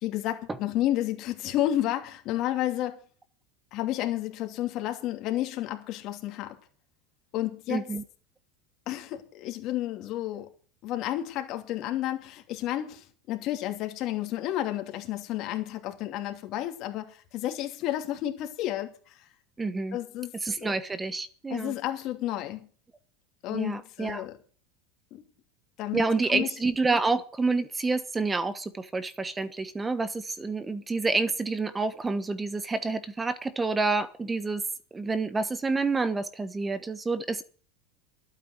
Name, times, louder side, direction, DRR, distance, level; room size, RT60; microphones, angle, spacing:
voice 1, 0.0-3.0 3.7-6.6 7.3-7.9 8.9-10.5 10.8-19.3 19.9-20.8 21.5-22.7 23.4-24.3 25.1-25.2 25.8-26.0 26.3-26.5, left 13 dB, 45° left, 2.8 m, -31 dB
voice 2, 7.7-8.0 19.6-20.0 20.4-21.7 23.5-24.2 25.9-34.6 34.9-37.4, right 3 dB, 15° right, 1.1 m, -28 dB
12.0 x 9.2 x 8.0 m
supercardioid pair, 140°, 0 cm